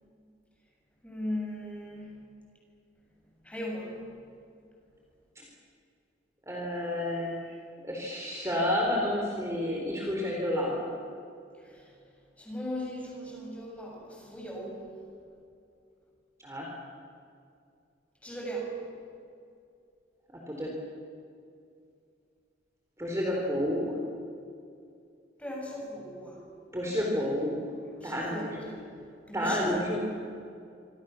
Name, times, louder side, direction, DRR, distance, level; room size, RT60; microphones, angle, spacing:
voice 1, 1.0-2.3 3.4-4.2 11.6-11.9 12.4-14.9 18.2-18.9 23.3-23.6 25.4-26.5 28.0-29.0 29.3-29.7, equal, 5° left, -1 dB, 7.4 m, -38 dB
voice 2, 6.5-7.5 7.8-10.9 16.4-16.7 20.5-20.7 23.0-24.0 26.7-27.6 28.0-28.6 29.3-30.0, left 1 dB, 15° right, -2 dB, 4.2 m, -30 dB
27.5 x 25.5 x 7.2 m, 2.4 s
head